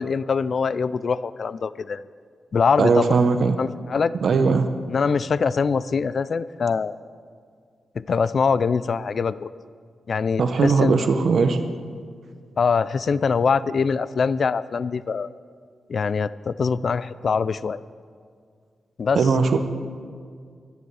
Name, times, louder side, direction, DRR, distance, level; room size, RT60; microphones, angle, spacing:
voice 1, 0.0-2.0 2.5-3.2 3.6-4.1 4.9-6.9 8.0-9.5 10.1-10.9 12.6-15.3 15.9-17.8 19.0-19.3, left 5 dB, 55° left, 16 dB, 0.4 m, -23 dB
voice 2, 2.8-3.6 4.2-4.7 10.4-11.6 19.2-19.6, right 5 dB, 65° right, 7 dB, 1.1 m, -19 dB
24.0 x 10.5 x 4.8 m, 2.1 s
wide cardioid pair, 110°, 0 cm